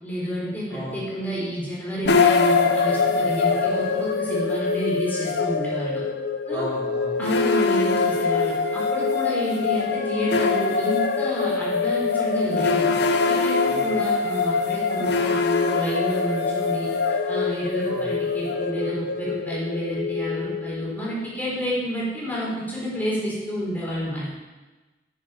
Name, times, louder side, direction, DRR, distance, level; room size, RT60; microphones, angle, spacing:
voice 1, 0.0-6.0 6.5-6.7 7.2-12.9 13.3-16.9 17.3-24.4, equal, 10° left, -7 dB, 3.6 m, -29 dB
sound 1, 2.1-21.2, left 4 dB, 65° left, 0.7 m, -23 dB
voice 2, 6.5-7.2 13.7-13.8 17.9-18.0, equal, 25° right, -8 dB, 2.8 m, -34 dB
10.0 x 6.4 x 5.7 m, 1.2 s
head